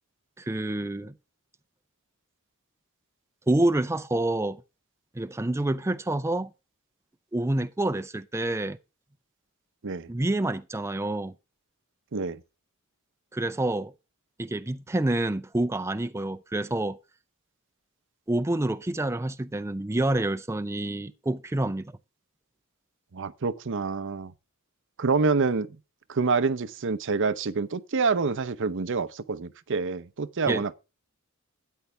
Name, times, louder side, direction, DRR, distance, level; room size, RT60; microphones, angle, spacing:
voice 1, 0.4-1.1 3.5-4.6 5.2-6.5 7.3-8.8 10.1-11.3 13.3-13.9 14.4-17.0 18.3-21.9 30.5-30.6, right 1 dB, 15° right, 0.5 m, -27 dB
voice 2, 23.1-24.3 25.0-25.8 26.1-30.7, right 4 dB, 60° right, 0.7 m, -27 dB
12.5 x 9.3 x 3.4 m
head